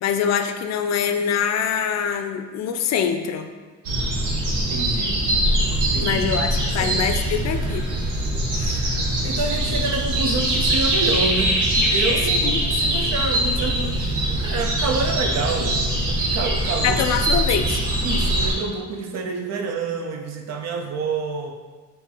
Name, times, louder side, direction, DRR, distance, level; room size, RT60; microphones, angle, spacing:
voice 1, 0.0-3.5 6.0-7.8 8.5-8.7 12.4-12.6 16.8-17.8, left 7 dB, 60° left, 8 dB, 0.4 m, -24 dB
sound 1, 3.8-18.5, right 1 dB, 85° right, 1.0 m, -22 dB
voice 2, 4.7-5.2 5.9-6.3 6.7-7.0 9.2-17.0 18.0-21.5, right 3 dB, 60° right, 4 dB, 0.6 m, -28 dB
4.4 x 2.7 x 3.9 m, 1.4 s
cardioid pair, 90°, 30 cm